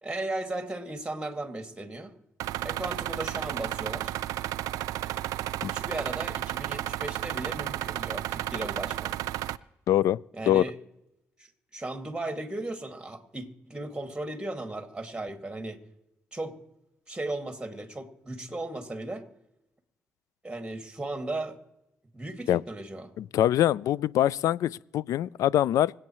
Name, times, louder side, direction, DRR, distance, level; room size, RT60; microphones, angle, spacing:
voice 1, 0.0-2.1 2.6-4.1 5.6-9.2 10.3-10.8 11.4-15.8 16.3-16.6 17.1-19.3 20.4-21.6 22.1-23.1, right 2 dB, 15° right, 2.2 m, -36 dB
sound 1, 2.4-9.6, right 13 dB, 80° right, 0.4 m, -33 dB
voice 2, 9.9-10.2 10.5-10.6 22.5-22.6 23.2-25.9, left 12 dB, 75° left, 0.3 m, -24 dB
25.5 x 8.7 x 3.1 m
supercardioid pair, 50°, 6 cm